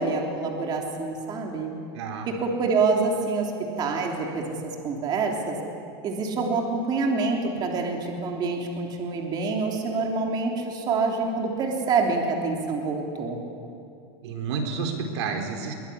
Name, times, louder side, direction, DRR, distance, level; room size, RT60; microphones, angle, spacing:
voice 1, 0.0-1.7 2.4-3.5 3.8-4.5 4.8-5.6 6.0-13.4, right 4 dB, 30° right, 1 dB, 3.2 m, -26 dB
voice 2, 1.9-2.3 14.2-15.7, right 5 dB, 80° right, 4 dB, 4.1 m, -30 dB
23.0 x 22.5 x 10.0 m, 2.6 s
supercardioid pair, 155°, 14 cm